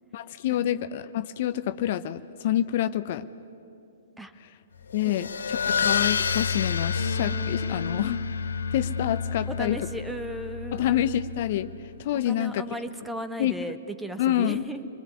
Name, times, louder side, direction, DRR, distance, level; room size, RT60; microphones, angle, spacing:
voice 1, 0.1-3.3 4.4-4.5 4.9-8.2 8.7-9.9 10.7-12.6 13.4-13.5 14.2-14.6, left 11 dB, 50° left, 12 dB, 0.8 m, -27 dB
sound 1, 4.9-11.9, left 7 dB, 80° left, 1.1 m, -30 dB
sound 2, 7.0-11.5 11.8-13.2, equal, 85° right, 4.4 m, -39 dB
voice 2, 9.5-10.9 12.2-14.9, right 1 dB, 5° right, 10 dB, 1.3 m, -36 dB
29.0 x 21.5 x 9.7 m, 2.6 s
hypercardioid pair, 120°, 0 cm